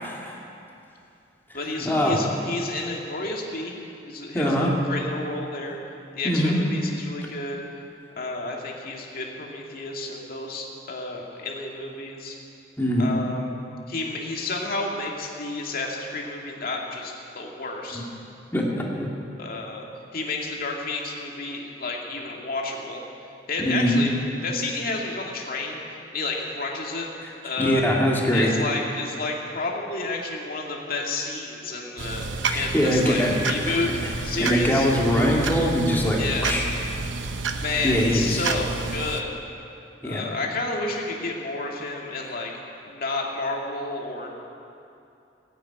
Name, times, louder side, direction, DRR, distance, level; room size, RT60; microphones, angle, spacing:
voice 1, 0.0-0.4 1.8-2.2 4.3-4.7 6.2-6.6 12.8-13.1 17.9-18.0 18.5-19.1 23.7-24.0 27.6-28.5 32.5-33.3 33.7-33.8 34.4-36.6 37.8-38.4 40.0-40.2, equal, 10° left, -3 dB, 2.3 m, -22 dB
voice 2, 1.5-5.8 6.1-7.8 8.2-12.4 13.0-13.6 13.9-18.0 19.4-23.0 23.5-24.1 24.4-27.1 27.4-27.8 28.3-33.9 34.2-34.9 36.2-36.5 37.6-39.3 40.0-42.5 42.9-44.3, left 3 dB, 55° left, -1 dB, 2.2 m, -31 dB
sound 1, 32.0-39.2, right 4 dB, 80° right, 0.9 m, -30 dB
16.5 x 9.1 x 8.8 m, 2.7 s
head